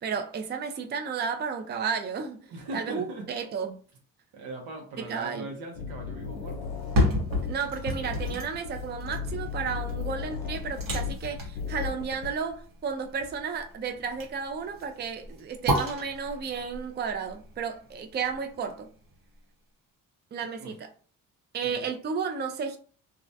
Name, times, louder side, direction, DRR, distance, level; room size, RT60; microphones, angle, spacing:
voice 1, 0.0-2.4 2.7-3.8 5.0-5.5 7.4-18.9 20.3-20.9 21.5-22.8, right 6 dB, 30° right, 0.4 m, -33 dB
voice 2, 2.5-3.3 4.3-6.7 8.3-8.4 20.6-20.7 21.6-21.9, right 2 dB, 85° right, 0.8 m, -40 dB
sound 1, 5.7-12.3, left 6 dB, 85° left, 0.5 m, -36 dB
sound 2, 6.7-18.7 19.1-19.2, equal, 65° right, 1.0 m, -32 dB
2.4 x 2.0 x 2.6 m
supercardioid pair, 65°, 36 cm